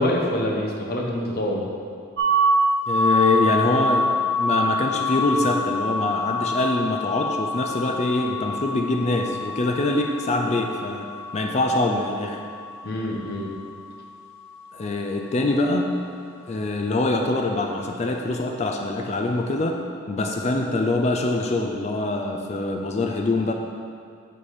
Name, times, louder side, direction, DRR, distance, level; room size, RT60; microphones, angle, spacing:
voice 1, 0.0-1.7 12.8-13.5, left 1 dB, 50° left, -1 dB, 0.9 m, -25 dB
sound 1, 2.2-13.9, left 1 dB, 65° right, 0.8 m, -26 dB
voice 2, 2.9-12.4 14.7-16.0 16.5-23.5, left 2 dB, 35° left, 2 dB, 0.4 m, -24 dB
6.9 x 4.8 x 4.2 m, 2.3 s
head